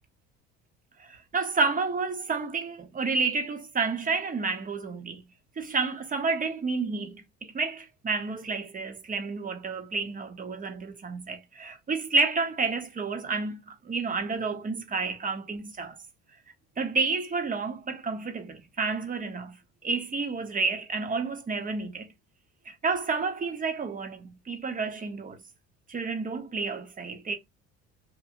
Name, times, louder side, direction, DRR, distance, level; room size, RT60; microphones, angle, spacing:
voice 1, 1.0-5.2 5.6-16.0 16.8-19.6 19.8-22.1 22.7-25.4 25.9-27.4, right 4 dB, 25° right, 0.9 m, -30 dB
3.0 x 2.5 x 2.5 m
supercardioid pair, 85°, 31 cm